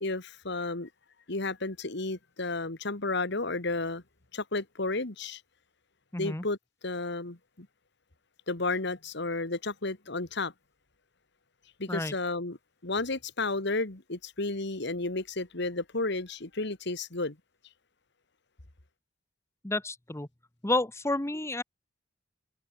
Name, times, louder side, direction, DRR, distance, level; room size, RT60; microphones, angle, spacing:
voice 1, 0.0-0.9 1.3-4.0 4.3-5.4 6.2-6.6 6.8-7.7 8.5-10.5 11.8-12.6 12.8-17.4, left 3 dB, 65° left, 2.2 m, -32 dB
voice 2, 6.1-6.4 11.9-12.1 19.6-20.3 20.6-21.6, left 2 dB, 15° left, 1.1 m, -30 dB
head